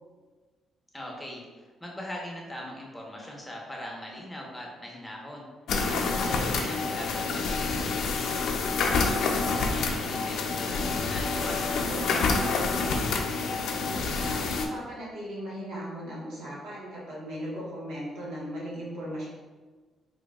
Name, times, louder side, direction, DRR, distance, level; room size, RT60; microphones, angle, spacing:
voice 1, 0.9-5.5 5.8-8.5 8.9-13.2, left 1 dB, 10° left, -2 dB, 0.9 m, -41 dB
sound 1, 5.7-14.7, left 4 dB, 70° left, 0.4 m, -28 dB
voice 2, 6.0-6.6 11.6-12.4 14.2-19.3, equal, 80° right, -6 dB, 1.5 m, -38 dB
4.5 x 2.7 x 2.4 m, 1.4 s
cardioid pair, 90°, 0 cm